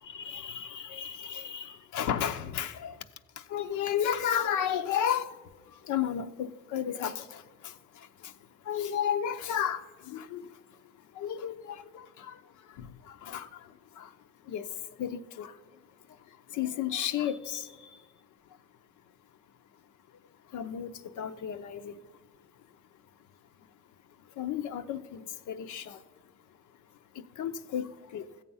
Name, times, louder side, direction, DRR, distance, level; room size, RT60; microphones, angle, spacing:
voice 1, 0.1-2.9 3.5-5.3 5.9-7.4 8.7-10.4 11.2-11.8 12.2-12.3 12.8-13.5 14.0-14.1 14.5-14.6 15.0-15.5 16.5-17.7 20.5-20.9 21.2-21.9 24.4-26.0 27.4-27.9 28.1-28.2, left 9 dB, 75° left, 9 dB, 0.7 m, -32 dB
14.5 x 8.1 x 5.5 m, 1.4 s
cardioid pair, 90°, 30 cm